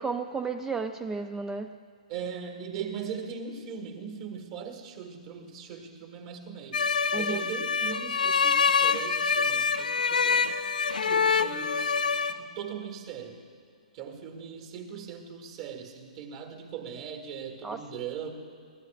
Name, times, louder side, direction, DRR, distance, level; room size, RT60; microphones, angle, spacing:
voice 1, 0.0-1.7 7.1-7.4 17.6-17.8, right 4 dB, 10° right, 10 dB, 0.3 m, -33 dB
voice 2, 2.1-6.8 7.1-10.5 11.0-13.4 13.9-18.3, right 7 dB, 45° right, 5 dB, 1.8 m, -39 dB
sound 1, 6.7-12.3, left 5 dB, 90° left, 0.5 m, -25 dB
22.0 x 16.0 x 2.5 m, 2.2 s
hypercardioid pair, 135°, 4 cm